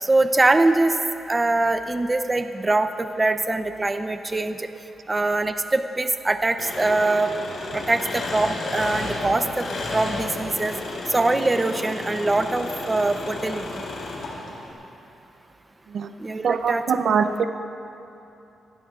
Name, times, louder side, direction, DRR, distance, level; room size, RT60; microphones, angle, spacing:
voice 1, 0.0-0.9 1.3-4.7 5.1-7.3 7.7-9.6 9.9-10.7 11.1-13.7 16.2-16.8, right 2 dB, 20° right, 8 dB, 0.7 m, -23 dB
Engine, 6.6-14.7, left 2 dB, 75° left, 3.7 m, -32 dB
voice 2, 16.4-17.4, right 6 dB, 70° right, 8 dB, 0.7 m, -22 dB
26.5 x 15.5 x 2.5 m, 2.9 s
cardioid pair, 90°, 0 cm